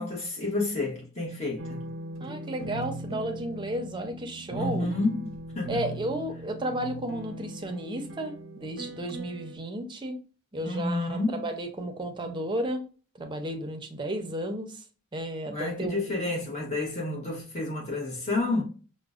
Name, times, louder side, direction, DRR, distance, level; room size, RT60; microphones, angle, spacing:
voice 1, 0.0-1.9 4.5-5.8 10.6-11.5 15.5-18.6, left 2 dB, 35° left, 1.1 m, -30 dB
sound 1, 1.6-9.6, right 2 dB, 85° right, 0.6 m, -39 dB
voice 2, 2.2-4.9 5.7-10.2 10.5-12.8 13.2-14.8 15.1-16.0, right 1 dB, 25° right, 0.6 m, -33 dB
5.0 x 2.1 x 2.4 m
head